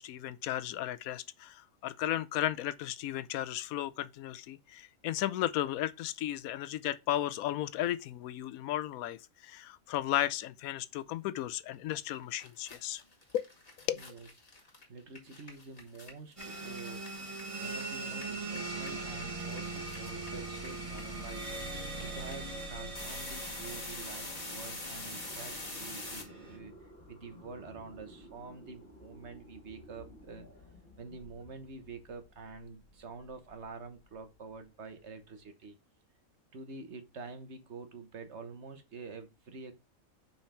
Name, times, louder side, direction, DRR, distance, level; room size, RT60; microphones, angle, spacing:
voice 1, 0.0-13.0 13.3-13.5 13.9-14.0, left 13 dB, 90° left, 1.0 m, -34 dB
sound 1, 12.0-12.1 12.3-17.8 18.1-26.2, left 2 dB, 30° left, 2.0 m, -44 dB
voice 2, 13.9-14.3 14.9-17.3 17.6-26.7 27.1-30.5 31.0-35.8 36.5-39.7, right 4 dB, 55° right, 1.4 m, -47 dB
sound 2, 16.4-26.6, right 3 dB, 25° right, 1.6 m, -41 dB
sound 3, 18.3-35.4, left 1 dB, 45° left, 2.2 m, -57 dB
5.6 x 4.5 x 5.6 m
omnidirectional pair, 1.4 m